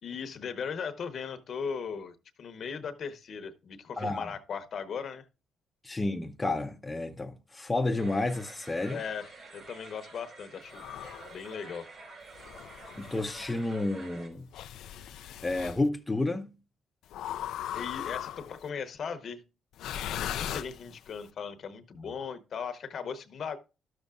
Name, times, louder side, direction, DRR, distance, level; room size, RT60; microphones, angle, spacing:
voice 1, 0.0-5.3 8.9-10.8 11.3-11.9 17.7-19.4 20.2-23.6, left 6 dB, 55° left, 0.9 m, -38 dB
voice 2, 4.0-4.3 5.8-9.0 13.0-14.5 15.4-16.5, left 2 dB, 15° left, 0.6 m, -31 dB
sound 1, 8.0-14.3, right 3 dB, 50° right, 5.2 m, -49 dB
sound 2, 10.7-11.4 12.3-13.5 14.5-15.8 17.1-18.6 19.7-21.2, left 11 dB, 80° left, 0.3 m, -38 dB
12.5 x 6.7 x 2.4 m
cardioid pair, 90°, 0 cm